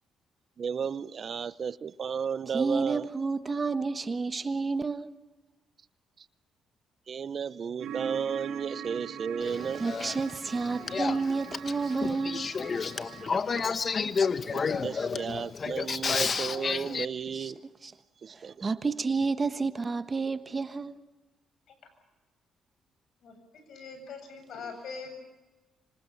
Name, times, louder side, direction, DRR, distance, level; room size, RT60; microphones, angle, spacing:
voice 1, 0.6-3.1 7.1-9.9 14.5-17.6 18.2-18.7, right 6 dB, 50° right, 0.8 m, -33 dB
voice 2, 2.5-5.1 9.8-12.5 17.3-17.5 17.8-17.9 18.4-21.0, right 4 dB, 30° right, 1.2 m, -30 dB
sound 1, 7.8-13.3, right 9 dB, 85° right, 3.3 m, -42 dB
Male speech man speaking / Female speech woman speaking / Conversation, 9.4-17.1, left 5 dB, 40° left, 1.2 m, -31 dB
voice 3, 23.2-25.1, left 4 dB, 70° left, 8.0 m, -42 dB
26.0 x 25.5 x 7.2 m
cardioid pair, 90°, 0 cm